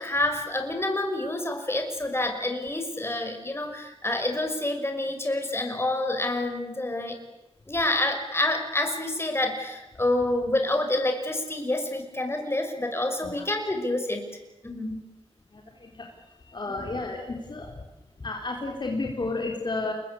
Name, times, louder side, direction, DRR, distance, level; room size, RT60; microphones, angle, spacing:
voice 1, 0.0-7.2 7.7-14.3 14.6-15.0 16.7-16.8, left 1 dB, 20° left, 5 dB, 5.9 m, -28 dB
voice 2, 15.5-16.1 16.5-17.8 18.2-19.9, left 3 dB, 45° left, 1 dB, 4.1 m, -32 dB
29.0 x 22.0 x 8.6 m, 0.98 s
wide cardioid pair, 90°, 11 cm